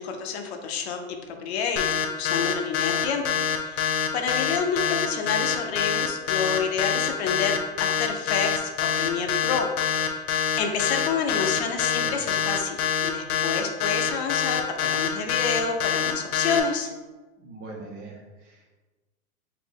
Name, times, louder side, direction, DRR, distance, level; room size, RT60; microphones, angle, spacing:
voice 1, 0.0-1.8 2.1-9.7 10.0-10.2 10.6-16.9, left 6 dB, 50° left, 4 dB, 0.5 m, -29 dB
sound 1, 1.8-16.6, left 8 dB, 80° left, 0.7 m, -25 dB
voice 2, 11.9-12.4 17.4-18.7, right 2 dB, 60° right, -1 dB, 1.2 m, -42 dB
4.0 x 2.6 x 3.4 m, 1.2 s
supercardioid pair, 150°, 42 cm